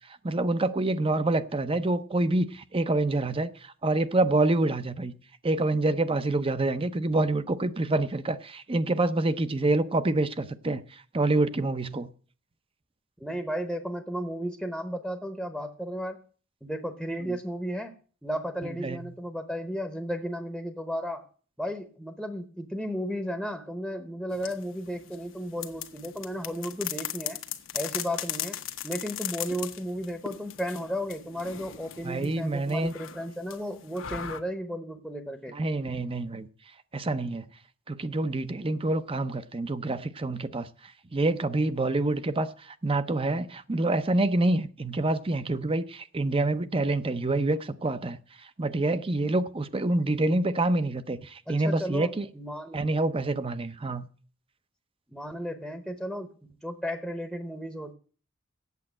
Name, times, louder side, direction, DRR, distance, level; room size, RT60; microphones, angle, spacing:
voice 1, 0.2-5.1 5.4-12.1 17.3-17.4 18.8-19.0 32.0-32.9 35.5-36.5 36.9-37.5 37.9-40.7 41.1-48.2 48.6-52.3 52.7-54.1, right 2 dB, 30° right, 0.6 m, -27 dB
voice 2, 13.2-16.2 16.6-18.0 18.2-21.3 21.6-27.4 27.7-28.6 28.8-35.6 51.5-53.0 55.1-56.3 56.6-57.9, equal, ahead, 0.9 m, -34 dB
sound 1, 24.3-34.4, left 10 dB, 85° left, 1.1 m, -38 dB
8.4 x 7.5 x 8.8 m
head